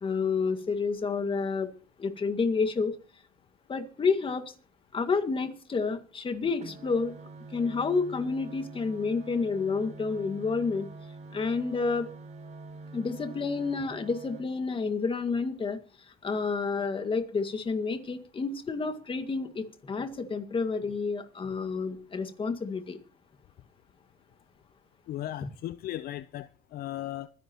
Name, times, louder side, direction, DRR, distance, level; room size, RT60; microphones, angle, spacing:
voice 1, 0.0-1.7 2.0-2.9 3.7-4.5 4.9-7.1 7.5-10.9 11.3-12.1 12.9-15.8 16.2-23.0, left 4 dB, 30° left, 1.9 m, -29 dB
sound 1, 6.4-14.4, right 3 dB, 40° right, 4.9 m, -46 dB
voice 2, 25.1-27.3, left 13 dB, 65° left, 0.6 m, -37 dB
24.5 x 10.5 x 3.0 m
cardioid pair, 110°, 17 cm